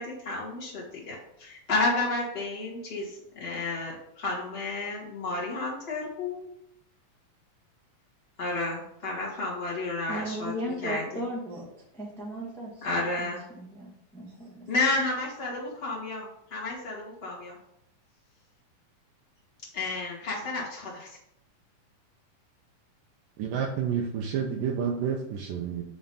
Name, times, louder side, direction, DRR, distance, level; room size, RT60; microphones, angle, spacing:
voice 1, 0.0-6.5 8.4-11.2 12.8-13.4 14.7-17.6 19.7-21.1, left 2 dB, 20° left, -5 dB, 1.7 m, -31 dB
voice 2, 10.1-11.7 11.9-14.7, right 1 dB, 5° left, -5 dB, 0.4 m, -37 dB
voice 3, 23.4-25.8, right 7 dB, 80° right, 1 dB, 2.3 m, -29 dB
7.2 x 3.8 x 5.5 m, 0.76 s
omnidirectional pair, 4.0 m